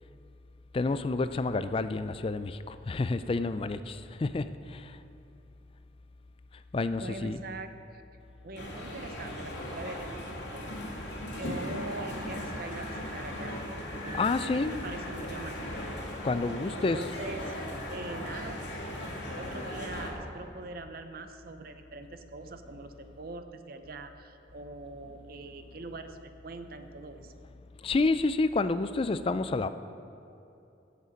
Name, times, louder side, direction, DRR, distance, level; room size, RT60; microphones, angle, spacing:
voice 1, 0.7-5.0 6.7-7.4 14.1-14.7 16.2-17.0 27.8-29.7, left 3 dB, 30° left, 12 dB, 0.3 m, -29 dB
voice 2, 6.9-8.0 8.4-11.0 11.3-13.6 14.0-15.9 16.7-18.6 19.4-26.2 26.4-27.3, right 2 dB, 50° right, 8 dB, 0.7 m, -43 dB
sound 1, 8.6-20.1, left 1 dB, 70° left, 2.2 m, -38 dB
16.0 x 6.7 x 5.2 m, 2.8 s
head